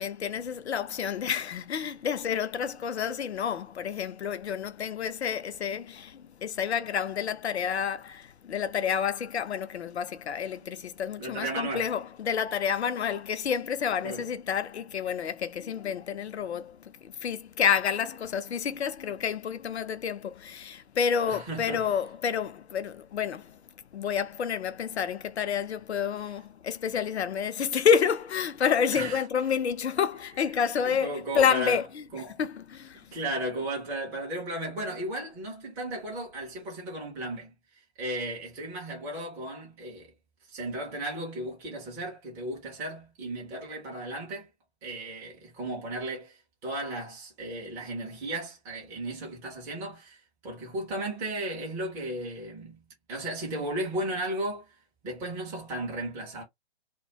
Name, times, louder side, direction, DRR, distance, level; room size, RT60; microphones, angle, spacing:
voice 1, 0.0-23.6 23.9-32.0 32.4-33.2, left 7 dB, 75° left, 0.5 m, -29 dB
voice 2, 11.2-11.9 14.0-14.3 21.3-21.9 28.9-29.2 30.8-31.8 32.1-32.4 33.1-37.5 38.0-40.1 40.5-44.5 44.8-52.8 53.1-54.8 55.0-56.4, right 1 dB, 10° right, 0.4 m, -35 dB
2.2 x 2.1 x 2.7 m
figure-of-eight pair, 125°, 33 cm